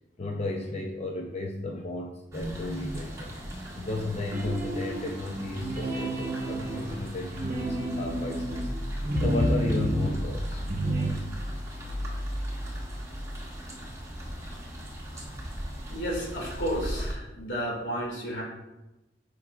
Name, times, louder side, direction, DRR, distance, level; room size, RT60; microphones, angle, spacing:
voice 1, 0.2-3.3 3.8-8.7 9.1-10.8 12.5-12.7 15.1-15.3, left 2 dB, 40° left, 1 dB, 0.5 m, -33 dB
sound 1, 2.3-17.1, equal, 20° right, 1.3 m, -37 dB
sound 2, 4.3-5.1 5.5-10.2 10.6-11.1, right 1 dB, 55° right, 1.1 m, -31 dB
voice 2, 15.9-18.4, equal, 80° left, -2 dB, 2.2 m, -32 dB
10.5 x 4.6 x 2.4 m, 0.99 s
head